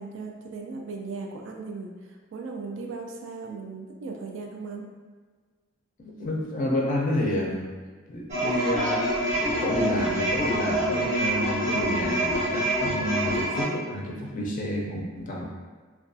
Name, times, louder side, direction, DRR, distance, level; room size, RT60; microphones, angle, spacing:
voice 1, 0.0-1.9 2.3-4.9 8.3-8.5, right 4 dB, 70° right, 1 dB, 0.3 m, -37 dB
voice 2, 6.0-7.7 8.1-15.5, left 1 dB, 40° left, -3 dB, 0.4 m, -29 dB
sound 1, 8.3-13.6, right 1 dB, 35° right, 0.7 m, -26 dB
2.3 x 2.2 x 2.5 m, 1.5 s
head